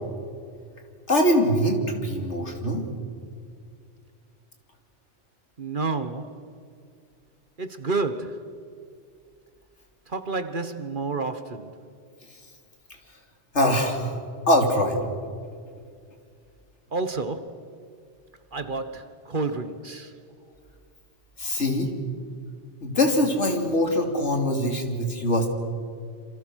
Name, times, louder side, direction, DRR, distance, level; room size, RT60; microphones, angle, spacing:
voice 1, 1.1-2.9 13.5-14.2 14.5-15.0 21.4-21.9 22.8-25.5, left 1 dB, 75° left, 3.5 m, -23 dB
voice 2, 5.6-6.4 7.6-8.5 10.1-11.8 16.9-17.6 18.5-20.1, right 3 dB, 45° right, 1.4 m, -30 dB
27.5 x 27.0 x 6.4 m
omnidirectional pair, 1.2 m